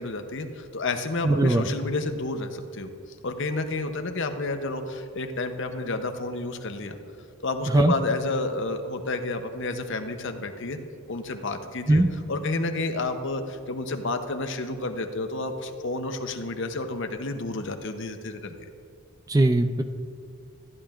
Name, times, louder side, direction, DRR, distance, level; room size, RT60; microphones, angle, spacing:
voice 1, 0.0-2.9 3.2-7.0 7.4-10.8 11.1-12.0 12.3-18.5, left 2 dB, 55° left, 7 dB, 0.8 m, -30 dB
voice 2, 1.2-1.7 7.7-7.9 11.9-12.1 19.3-19.8, right 2 dB, 15° right, 7 dB, 0.3 m, -20 dB
14.5 x 10.5 x 2.5 m, 2.5 s
head